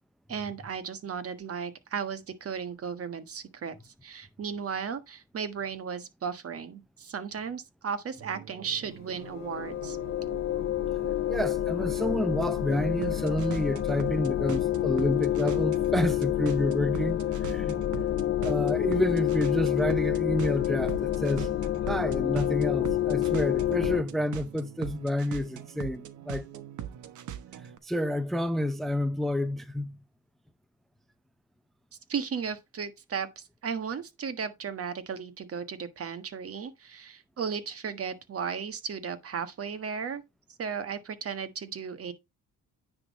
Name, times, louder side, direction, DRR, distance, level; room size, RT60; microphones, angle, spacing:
voice 1, 0.3-10.0 32.1-40.2 40.6-42.1, right 6 dB, 50° right, 1.4 m, -35 dB
sound 1, 8.2-27.8, right 10 dB, 75° right, 1.1 m, -42 dB
sound 2, 9.2-24.0, left 13 dB, 45° left, 0.6 m, -28 dB
voice 2, 11.3-17.8 18.4-21.5 21.9-26.5 27.8-30.0, equal, ahead, 0.6 m, -29 dB
9.7 x 3.8 x 5.2 m
cardioid pair, 90°, 30 cm